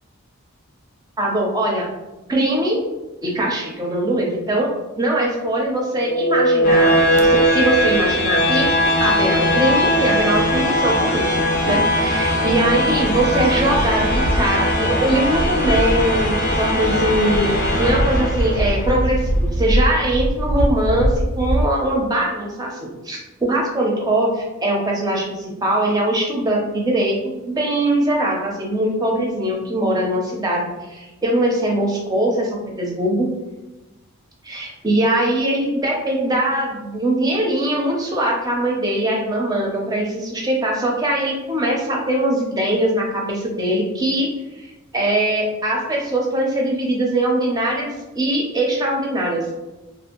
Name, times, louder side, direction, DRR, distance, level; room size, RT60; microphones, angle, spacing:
voice 1, 1.2-1.9 2.3-2.8 3.2-8.7 9.0-11.4 11.6-33.3 34.4-49.5, right 1 dB, 20° right, -1 dB, 0.4 m, -21 dB
sound 1, 5.9-18.9, equal, 40° left, 0.4 m, -19 dB
sound 2, 7.1-7.3 7.8-8.0 8.4-9.9 10.5-10.6 12.3-21.6, right 1 dB, 80° right, 0.4 m, -24 dB
2.5 x 2.4 x 2.8 m, 1.1 s
head